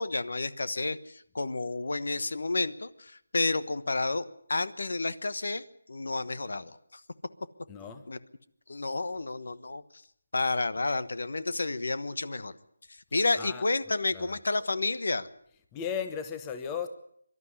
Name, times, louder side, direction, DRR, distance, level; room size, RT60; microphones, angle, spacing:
voice 1, 0.0-7.0 8.1-8.2 8.7-9.8 10.3-12.5 12.9-15.3, left 3 dB, 65° left, 13 dB, 1.2 m, -31 dB
voice 2, 7.7-8.0 13.4-13.7 14.1-14.4 15.7-16.9, left 7 dB, 10° left, 8 dB, 0.8 m, -36 dB
24.0 x 12.5 x 9.7 m, 0.70 s
figure-of-eight pair, 175°, 0 cm